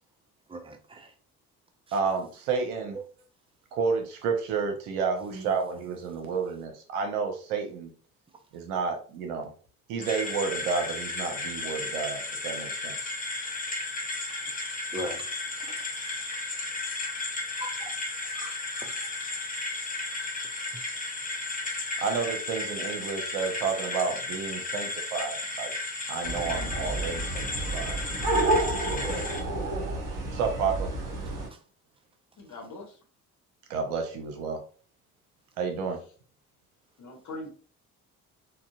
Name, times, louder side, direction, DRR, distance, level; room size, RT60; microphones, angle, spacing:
voice 1, 0.5-1.1 2.9-3.0 5.3-5.6 14.9-15.3 15.7-15.8 17.6-17.9 18.3-19.0 29.0-29.3, right 1 dB, 10° right, 0.5 m, -39 dB
voice 2, 1.9-3.0 3.7-7.9 8.5-9.5 9.9-13.1 22.0-25.7 26.1-28.0 28.7-29.2 30.3-30.9 33.7-34.6 35.6-36.0, right 5 dB, 70° right, 0.8 m, -31 dB
sound 1, 10.0-29.4, left 2 dB, 20° left, 0.8 m, -34 dB
sound 2, 26.2-31.5, right 2 dB, 50° right, 1.3 m, -30 dB
voice 3, 32.4-33.0 37.0-37.5, left 2 dB, 40° left, 1.1 m, -41 dB
3.8 x 2.3 x 2.3 m
figure-of-eight pair, 45°, 45 cm